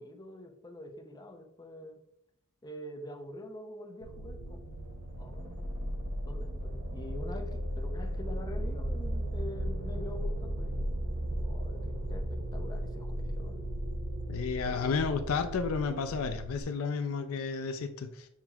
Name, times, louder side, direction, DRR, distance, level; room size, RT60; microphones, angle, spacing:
voice 1, 0.0-2.0 2.6-4.6 5.2-10.9 11.4-13.7 14.7-15.1, left 1 dB, 20° left, 3 dB, 0.5 m, -46 dB
sound 1, 4.0-16.6, equal, 90° right, 0.7 m, -36 dB
voice 2, 14.3-18.3, left 5 dB, 70° left, 8 dB, 0.4 m, -32 dB
7.1 x 2.9 x 2.3 m, 0.76 s
head